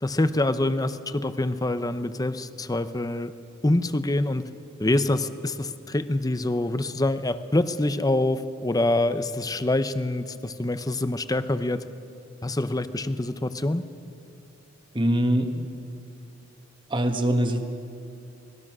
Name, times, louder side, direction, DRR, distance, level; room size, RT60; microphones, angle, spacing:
voice 1, 0.0-3.3 3.6-4.4 4.8-11.8 12.4-13.8, left 2 dB, 20° left, 12 dB, 0.7 m, -25 dB
voice 2, 14.9-15.5 16.9-17.6, right 1 dB, 25° right, 5 dB, 1.6 m, -22 dB
26.0 x 19.5 x 6.2 m, 2.5 s
head